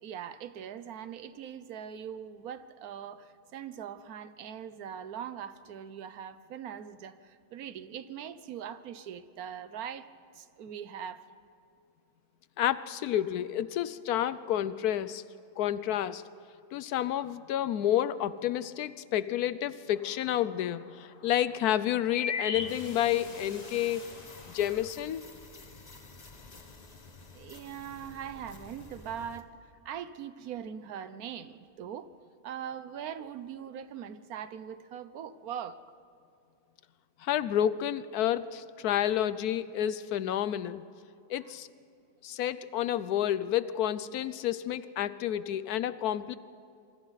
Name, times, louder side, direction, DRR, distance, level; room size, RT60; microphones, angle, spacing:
voice 1, 0.0-10.1 10.3-11.2 27.3-32.1 32.4-35.8 41.4-41.5, right 8 dB, 75° right, 1.3 m, -41 dB
voice 2, 12.6-15.2 15.6-16.2 16.7-24.0 24.5-25.2 37.2-40.9 41.3-41.7 42.2-46.3, left 11 dB, 90° left, 1.2 m, -30 dB
sound 1, 20.0-20.1 20.3-20.4 21.8-23.4 23.9-24.0 24.3-24.8, left 5 dB, 65° left, 1.4 m, -35 dB
sound 2, 22.5-29.4, left 3 dB, 30° left, 1.3 m, -49 dB
27.0 x 24.0 x 4.1 m
omnidirectional pair, 1.6 m